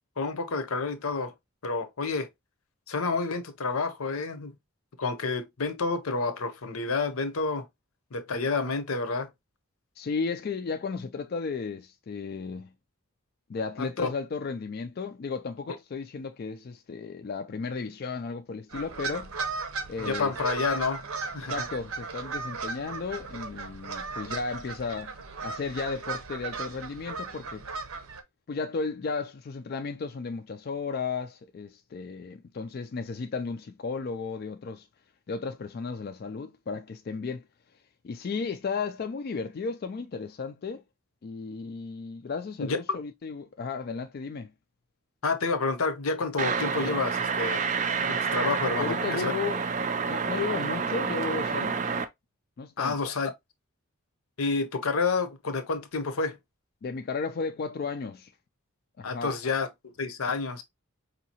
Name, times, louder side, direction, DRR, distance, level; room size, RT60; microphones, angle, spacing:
voice 1, 0.2-1.3 1.6-2.3 2.9-4.6 5.0-7.7 8.1-9.3 13.8-14.1 20.0-21.0 21.3-21.7 42.6-43.0 45.2-47.7 48.0-49.3 52.8-53.3 54.4-56.4 59.0-59.7 60.0-60.6, left 4 dB, 80° left, 0.7 m, -29 dB
voice 2, 10.0-12.7 13.5-19.3 19.9-20.3 21.4-25.1 25.4-27.7 28.5-34.9 35.3-37.4 38.0-40.8 41.2-44.5 48.8-49.6 50.1-52.0 52.6-53.0 56.8-58.3 59.0-59.4, left 4 dB, 45° left, 0.3 m, -34 dB
sound 1, 18.7-28.2, right 4 dB, 80° right, 0.7 m, -36 dB
sound 2, 46.4-52.0, right 5 dB, 35° right, 0.4 m, -29 dB
4.8 x 2.7 x 2.8 m
head